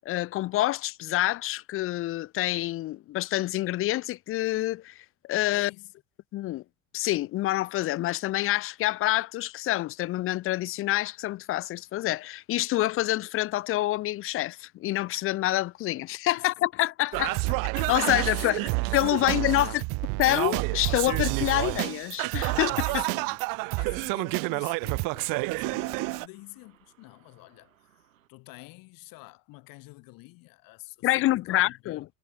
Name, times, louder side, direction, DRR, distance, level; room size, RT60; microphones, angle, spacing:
voice 1, 0.1-5.7 6.3-6.6 6.9-17.3 17.9-18.6 18.9-19.8 20.2-23.0 31.0-32.0, left 16 dB, 35° left, 0.5 m, -27 dB
voice 2, 5.5-5.9 16.4-16.5 17.1-17.6 18.5-18.7 19.2-19.8 22.9-23.4 23.8-28.0 28.3-32.0, left 23 dB, 55° left, 2.3 m, -47 dB
Singing, 17.1-26.3, right 30 dB, 55° right, 0.9 m, -29 dB
sound 1, 22.5-28.3, right 11 dB, 75° right, 7.5 m, -65 dB
figure-of-eight pair, 60°, 40 cm